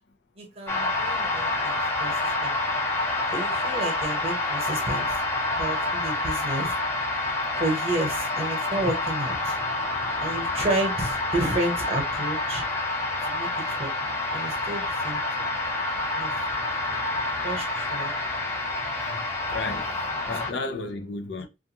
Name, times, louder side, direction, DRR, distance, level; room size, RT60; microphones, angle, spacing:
voice 1, 0.4-2.5 3.3-5.1 5.6-6.7 7.6-9.6 10.2-12.6 13.2-15.6 16.1-16.3 17.4-18.1 19.7-19.8 21.4-21.5, right 2 dB, 35° right, 1.0 m, -31 dB
sound 1, 0.7-20.5, left 2 dB, 15° left, 0.7 m, -28 dB
voice 2, 19.0-20.0 20.2-21.5, left 3 dB, 70° left, 0.5 m, -33 dB
2.4 x 2.4 x 2.8 m
head